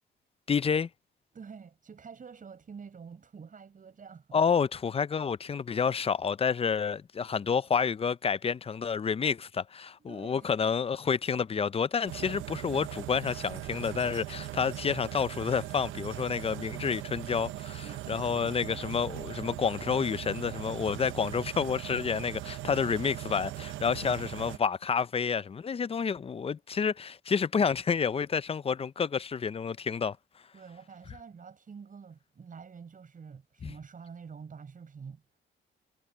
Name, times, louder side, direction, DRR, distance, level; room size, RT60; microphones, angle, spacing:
voice 1, 0.5-0.9 4.3-30.2 33.6-33.7, left 6 dB, 30° left, 0.5 m, -29 dB
voice 2, 1.3-4.4 10.0-10.5 17.8-18.8 30.5-35.4, right 6 dB, 40° right, 7.9 m, -48 dB
sound 1, 12.1-24.6, right 16 dB, 85° right, 0.8 m, -40 dB
cardioid pair, 90°, 20 cm